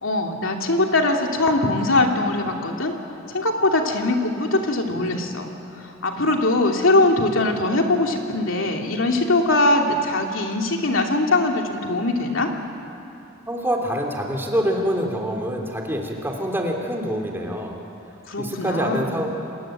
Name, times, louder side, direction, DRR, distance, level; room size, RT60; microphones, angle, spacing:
voice 1, 0.0-2.9 3.3-5.5 5.8-12.5 18.3-19.2, left 2 dB, 75° left, 2 dB, 2.8 m, -21 dB
voice 2, 13.5-17.8 18.4-19.3, equal, 10° right, 1 dB, 3.1 m, -25 dB
28.0 x 21.0 x 9.1 m, 2.7 s
head